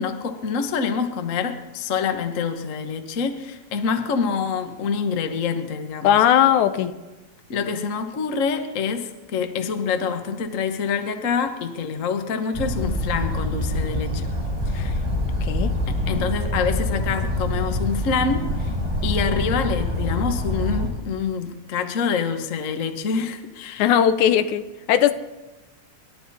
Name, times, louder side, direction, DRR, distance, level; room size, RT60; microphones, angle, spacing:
voice 1, 0.0-6.2 7.5-14.3 14.7-15.0 15.9-18.7 19.0-23.9, left 5 dB, 65° left, 7 dB, 0.7 m, -26 dB
voice 2, 6.0-6.9 14.7-14.9 15.4-15.7 23.8-25.1, left 10 dB, 80° left, 12 dB, 2.2 m, -18 dB
sound 1, 12.5-20.9, left 1 dB, 10° right, 2.8 m, -25 dB
28.5 x 12.0 x 4.2 m, 1.1 s
omnidirectional pair, 3.4 m